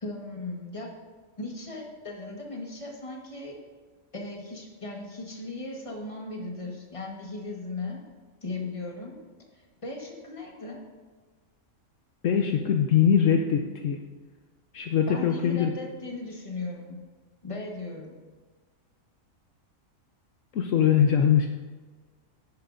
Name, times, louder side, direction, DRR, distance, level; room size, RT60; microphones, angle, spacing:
voice 1, 0.0-0.9 1.4-3.6 4.1-8.0 8.4-9.2 9.8-10.8 15.1-17.0 17.4-18.2, left 2 dB, 25° left, 0 dB, 1.5 m, -37 dB
voice 2, 12.2-14.0 14.7-15.7 20.5-21.5, left 8 dB, 70° left, 4 dB, 1.0 m, -22 dB
10.5 x 10.0 x 2.6 m, 1.4 s
omnidirectional pair, 1.5 m